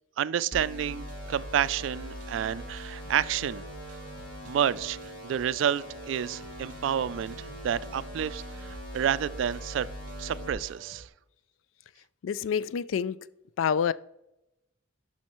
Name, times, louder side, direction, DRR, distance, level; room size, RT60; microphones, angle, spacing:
voice 1, 0.2-3.6 4.4-5.0 5.2-9.9 10.2-11.1, right 9 dB, 70° right, 0.3 m, -29 dB
sound 1, 0.5-10.5, equal, 25° left, 1.8 m, -41 dB
sound 2, 0.9-11.1, right 2 dB, 40° right, 0.7 m, -50 dB
voice 2, 12.2-13.2 13.6-13.9, left 7 dB, 85° left, 0.3 m, -27 dB
10.5 x 5.6 x 3.0 m
head